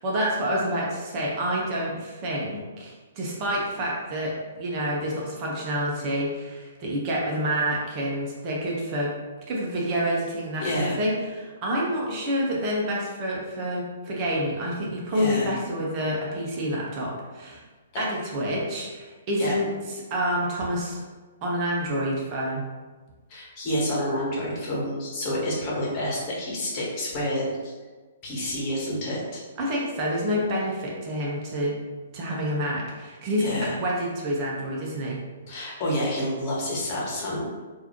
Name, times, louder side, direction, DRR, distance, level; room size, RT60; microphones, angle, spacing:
voice 1, 0.0-9.1 9.5-17.6 18.0-21.0 21.4-22.6 29.6-31.8 32.1-35.2, equal, 35° right, -4 dB, 1.0 m, -28 dB
voice 2, 10.6-11.0 15.1-15.6 17.9-18.0 19.4-19.5 23.3-27.7 28.2-29.4 33.4-33.8 35.5-37.4, equal, 35° left, -4 dB, 1.3 m, -28 dB
3.9 x 2.8 x 3.0 m, 1.3 s
figure-of-eight pair, 125°, 0 cm